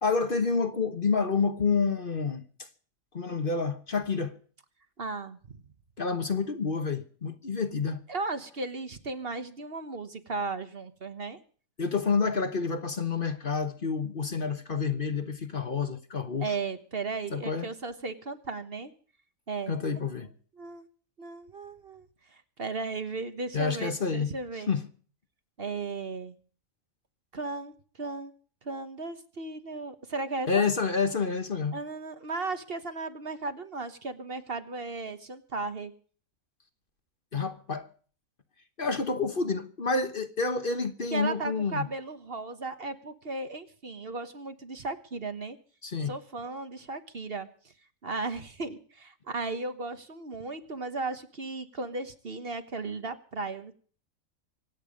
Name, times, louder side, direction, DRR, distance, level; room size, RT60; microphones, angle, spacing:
voice 1, 0.0-2.4 3.1-4.4 6.0-8.0 11.8-16.5 17.3-17.7 19.7-20.3 23.5-24.3 24.7-24.8 30.5-31.8 37.3-37.9 38.8-41.9 45.8-46.1, left 4 dB, 40° left, 1.3 m, -28 dB
voice 2, 5.0-5.4 8.1-11.4 16.4-18.9 19.5-19.7 20.6-20.9 21.2-24.7 25.6-26.4 27.3-28.3 28.6-30.7 31.7-35.9 41.1-45.6 46.1-47.5 48.0-53.7, right 3 dB, 45° right, 1.5 m, -36 dB
25.0 x 9.2 x 5.2 m
omnidirectional pair, 1.4 m